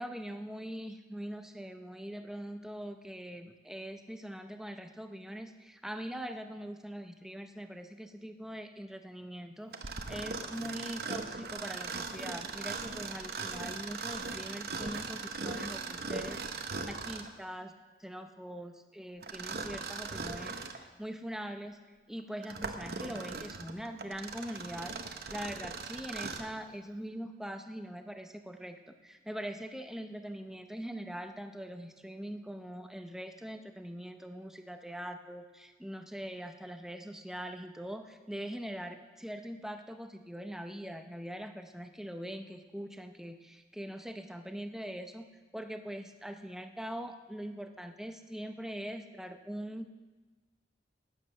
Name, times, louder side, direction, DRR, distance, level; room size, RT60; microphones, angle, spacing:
voice 1, 0.0-16.4 16.8-17.7 18.0-21.8 22.1-45.3 45.5-49.9, equal, 5° right, 7 dB, 0.6 m, -42 dB
Mechanisms, 9.7-17.4 19.2-20.8 21.4-21.5 22.2-26.6, right 4 dB, 60° right, 0.9 m, -39 dB
12.5 x 9.9 x 6.5 m, 1.3 s
head